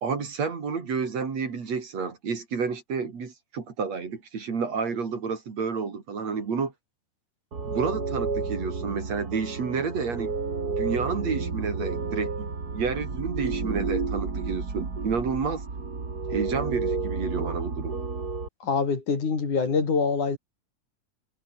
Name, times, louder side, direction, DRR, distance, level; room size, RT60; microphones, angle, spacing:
voice 1, 0.0-6.7 7.6-10.4 10.7-15.6 16.3-18.0, right 5 dB, 55° right, 4.5 m, -30 dB
sound 1, 7.5-18.5, right 4 dB, 30° right, 3.2 m, -31 dB
voice 2, 18.6-20.4, left 5 dB, 65° left, 6.0 m, -25 dB
omnidirectional pair, 3.7 m